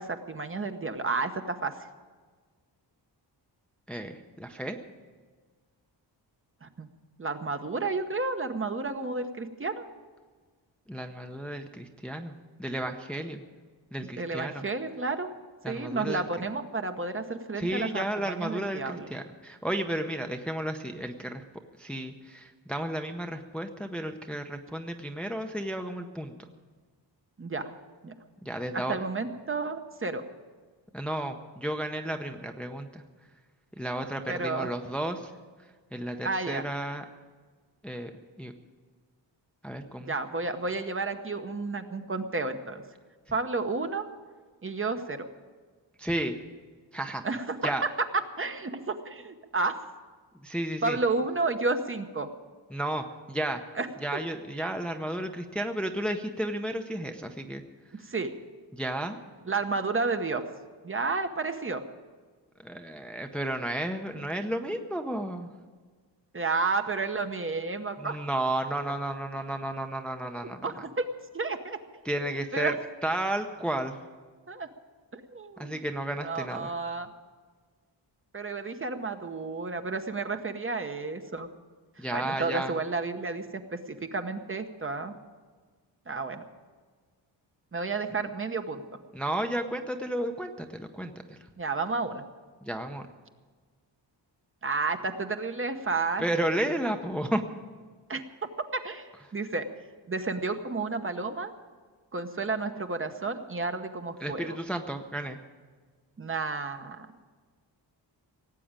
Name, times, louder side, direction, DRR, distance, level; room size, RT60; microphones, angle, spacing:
voice 1, 0.0-1.7 6.6-6.9 7.2-9.8 14.2-15.3 15.7-19.1 27.4-27.7 28.0-28.1 28.9-30.2 34.3-34.7 36.2-36.7 40.0-42.8 43.3-44.1 44.6-45.2 47.2-47.6 48.4-49.8 50.8-52.3 53.8-53.9 54.1-54.2 58.0-58.3 59.5-60.4 60.8-61.8 66.3-68.2 70.4-71.1 71.3-71.8 72.2-72.7 74.5-74.7 75.1-75.8 76.2-77.1 78.3-81.5 82.1-85.1 86.1-86.4 87.7-88.8 91.6-92.3 94.6-96.5 98.1-98.2 98.7-99.6 100.1-101.5 102.1-104.6 106.2-107.1, right 3 dB, 30° right, 7 dB, 0.9 m, -31 dB
voice 2, 3.9-4.8 10.9-12.3 12.6-13.4 13.9-14.6 15.6-16.2 17.6-21.4 21.8-26.3 28.4-29.0 30.9-33.0 33.8-35.3 35.9-37.0 37.8-38.1 38.4-38.5 39.6-40.1 46.0-46.3 46.9-47.2 47.6-47.8 50.4-51.0 52.7-53.6 54.0-57.6 58.7-59.2 62.6-65.5 68.0-70.7 72.0-72.7 73.0-74.0 75.6-76.7 82.0-82.7 89.1-91.4 92.6-93.0 96.2-97.4 104.2-105.4, right 1 dB, ahead, 5 dB, 0.7 m, -32 dB
17.5 x 8.4 x 8.8 m, 1.5 s
wide cardioid pair, 150°, 44 cm